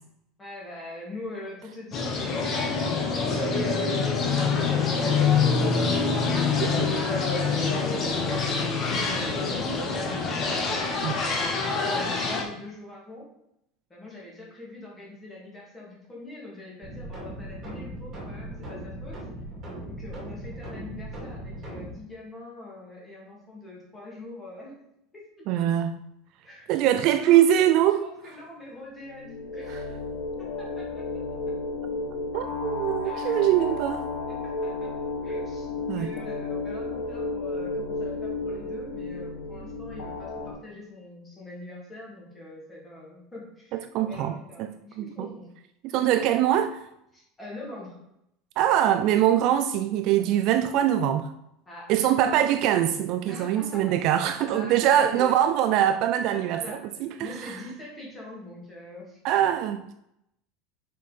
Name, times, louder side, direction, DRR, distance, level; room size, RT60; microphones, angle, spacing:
voice 1, 0.4-5.8 6.3-10.5 11.1-13.3 13.9-19.2 19.8-24.8 25.1-25.2 25.6-25.7 26.4-27.4 28.0-29.9 30.4-31.0 33.0-33.7 34.3-34.9 35.2-45.5 47.1-48.0 51.7-51.9 52.2-52.3 53.3-54.0 54.3-55.3 56.3-59.2, left 2 dB, 10° left, 2.3 m, -43 dB
sound 1, 1.9-12.4, left 4 dB, 25° left, 1.0 m, -25 dB
sound 2, 16.8-21.9, right 1 dB, 25° right, 2.4 m, -38 dB
voice 2, 25.5-25.9 26.7-28.0 29.7-29.8 32.3-34.0 35.9-36.1 43.7-44.4 45.0-45.3 45.8-46.9 48.6-51.3 51.9-57.5 59.2-59.8, right 11 dB, 40° right, 0.3 m, -23 dB
sound 3, 28.9-40.5, left 3 dB, 80° left, 1.2 m, -33 dB
6.4 x 5.1 x 4.2 m
cardioid pair, 175°, 0 cm